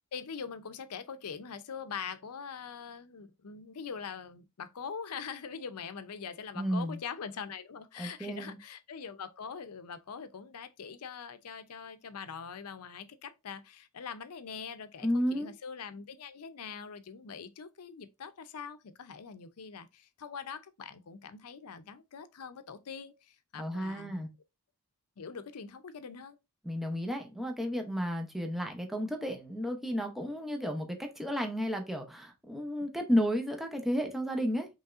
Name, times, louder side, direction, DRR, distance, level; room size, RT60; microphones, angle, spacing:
voice 1, 0.1-24.3 25.2-26.4, left 6 dB, 85° left, 0.6 m, -43 dB
voice 2, 6.6-7.0 8.0-8.6 15.0-15.5 23.6-24.3 26.6-34.7, equal, ahead, 0.7 m, -32 dB
5.4 x 3.1 x 2.4 m
head